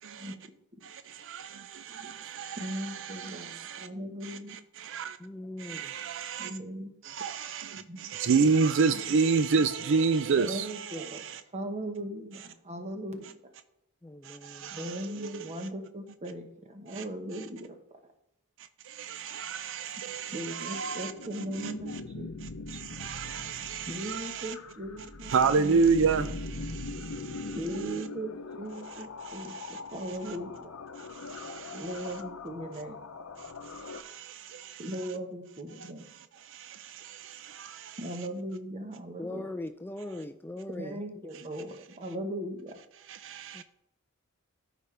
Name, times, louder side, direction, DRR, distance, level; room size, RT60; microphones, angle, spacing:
voice 1, 0.0-0.3 0.8-3.9 4.2-5.2 5.6-6.5 7.0-11.4 14.2-15.6 16.9-17.0 18.8-22.0 22.4-24.5 25.2-27.6 29.2-29.8 30.3-30.4 31.0-31.9 33.4-34.9 35.8-38.0 43.1-43.6, right 5 dB, 65° right, 12 dB, 0.4 m, -31 dB
voice 2, 2.6-4.6 6.4-6.9 7.8-8.0 10.3-11.2 11.5-13.3 14.7-17.8 20.3-22.3 23.9-25.3 25.6-25.8 27.5-30.7 31.7-33.0 34.8-36.1 38.0-39.4 40.8-42.8, right 1 dB, 30° right, 5 dB, 1.2 m, -38 dB
voice 3, 5.2-5.9 14.0-14.7 39.2-41.0 43.5-43.6, left 2 dB, 10° left, 8 dB, 0.3 m, -40 dB
sound 1, 20.6-34.0, left 3 dB, 80° left, 0.7 m, -42 dB
13.5 x 5.1 x 3.4 m, 0.81 s
head